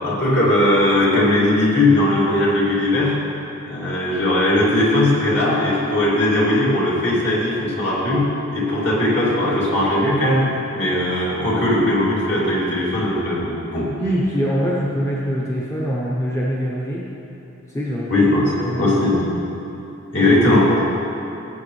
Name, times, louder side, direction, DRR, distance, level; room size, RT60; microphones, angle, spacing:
voice 1, 0.0-3.1 3.6-8.3 8.5-10.5 10.7-13.9 18.1-19.2 20.1-20.8, left 1 dB, 55° left, -7 dB, 2.7 m, -18 dB
voice 2, 14.0-17.1 17.7-18.1 18.6-19.1, equal, 15° left, -5 dB, 0.8 m, -23 dB
16.5 x 8.2 x 3.2 m, 2.9 s
head